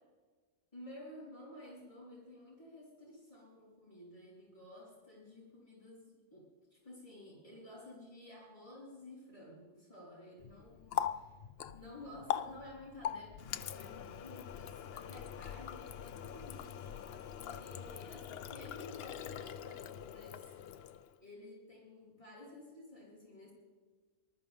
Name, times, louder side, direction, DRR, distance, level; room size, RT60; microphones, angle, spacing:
voice 1, 0.7-11.4 11.7-20.5 21.2-23.5, left 1 dB, 30° left, -7 dB, 4.9 m, -53 dB
Water tap faucet, 10.4-21.2, left 9 dB, 65° left, 0.8 m, -42 dB
20.0 x 13.0 x 3.7 m, 1.4 s
omnidirectional pair, 1.2 m